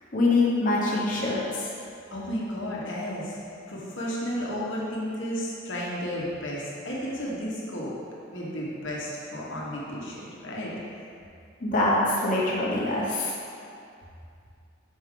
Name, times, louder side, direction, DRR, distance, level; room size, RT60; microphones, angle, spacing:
voice 1, 0.1-1.4 11.6-13.3, left 2 dB, 40° left, -5 dB, 1.0 m, -24 dB
voice 2, 2.1-3.4 3.7-8.0 8.3-10.7, equal, 60° left, -5 dB, 1.2 m, -33 dB
6.3 x 4.8 x 3.8 m, 2.5 s
head